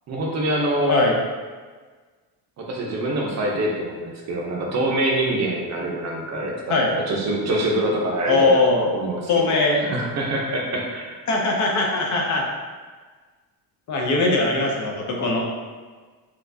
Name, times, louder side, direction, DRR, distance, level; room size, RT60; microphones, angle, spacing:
voice 1, 0.1-1.1 2.6-6.5 6.9-9.2 9.5-9.6 9.9-11.1, right 1 dB, 40° right, -1 dB, 0.6 m, -25 dB
voice 2, 8.2-8.9 9.3-9.8 11.3-12.4 13.9-15.4, left 2 dB, 45° left, -1 dB, 0.5 m, -20 dB
4.4 x 2.3 x 2.6 m, 1.4 s
cardioid pair, 145°, 42 cm